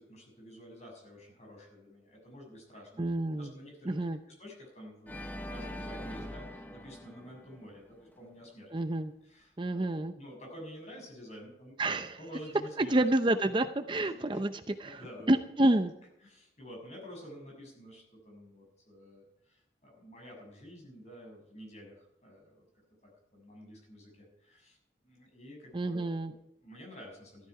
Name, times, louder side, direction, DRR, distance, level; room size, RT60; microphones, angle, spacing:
voice 1, 0.0-4.0 4.4-8.7 9.2-11.9 12.2-13.1 14.0-14.4 14.8-15.8 16.2-22.6 23.0-24.8 25.0-27.5, equal, 40° left, 0 dB, 6.8 m, -50 dB
voice 2, 3.0-3.5 3.9-4.2 8.7-9.1 9.6-10.1 11.8-12.2 12.8-14.5 14.8-15.0 15.3-15.9 25.7-26.3, right 1 dB, 25° right, 9 dB, 0.6 m, -28 dB
Organ, 5.1-8.2, left 1 dB, 10° left, 0.9 m, -43 dB
14.5 x 13.5 x 4.8 m, 0.79 s
head